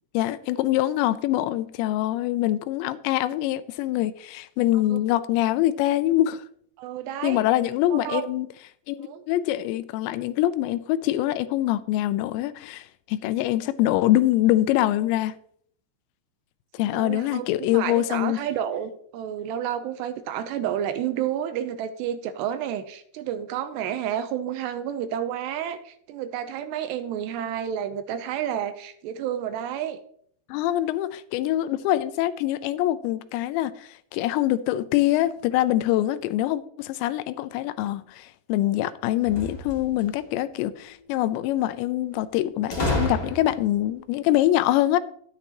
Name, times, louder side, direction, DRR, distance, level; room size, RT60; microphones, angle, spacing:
voice 1, 0.1-6.4 7.2-8.5 8.9-15.3 16.7-18.4 30.5-45.0, left 14 dB, 85° left, 2.8 m, -24 dB
voice 2, 6.8-7.4 7.9-8.3 9.0-9.2 16.9-30.0, right 10 dB, 80° right, 2.8 m, -30 dB
sound 1, 39.2-40.2 42.7-43.8, left 1 dB, 45° left, 0.5 m, -29 dB
12.0 x 10.0 x 3.0 m
omnidirectional pair, 5.1 m